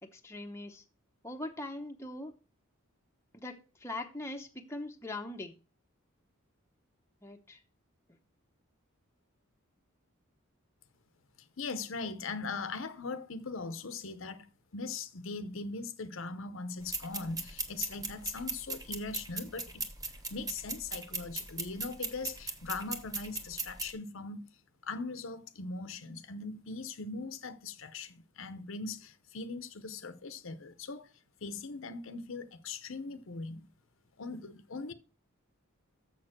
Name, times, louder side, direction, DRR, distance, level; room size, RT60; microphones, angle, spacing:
voice 1, 0.0-0.8 1.2-2.3 3.3-5.5 7.2-7.6 17.2-17.3, left 2 dB, 15° left, 0.8 m, -41 dB
voice 2, 11.6-19.9 20.3-24.5 24.8-31.1 31.4-33.7 34.2-34.9, left 3 dB, 65° left, 0.8 m, -40 dB
sound 1, 16.8-23.9, right 3 dB, 15° right, 1.1 m, -39 dB
7.1 x 6.6 x 5.9 m
head